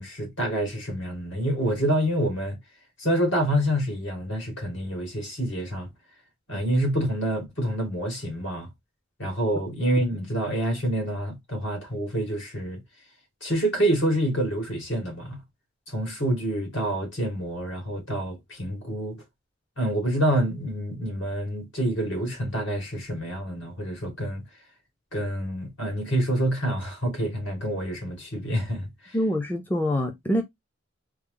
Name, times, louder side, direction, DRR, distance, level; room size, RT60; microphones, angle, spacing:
voice 1, 0.0-2.6 3.0-5.9 6.5-8.7 9.2-12.8 13.4-15.4 15.9-19.2 19.8-24.4 25.1-29.2, right 1 dB, 65° left, 2.1 m, -27 dB
voice 2, 29.1-30.4, equal, 10° left, 0.4 m, -25 dB
4.4 x 2.0 x 3.7 m
head